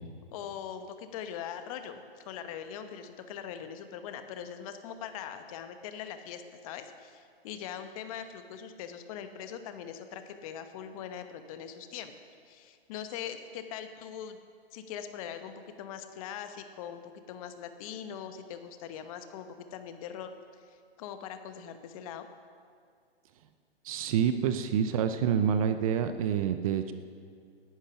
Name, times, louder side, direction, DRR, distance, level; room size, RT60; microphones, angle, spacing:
voice 1, 0.3-12.1 12.4-14.4 14.7-17.0 17.3-20.3 20.7-22.3, left 8 dB, 35° left, 8 dB, 1.1 m, -41 dB
voice 2, 23.8-26.9, right 8 dB, 35° right, 10 dB, 0.7 m, -27 dB
18.0 x 10.5 x 5.8 m, 2.1 s
hypercardioid pair, 140°, 31 cm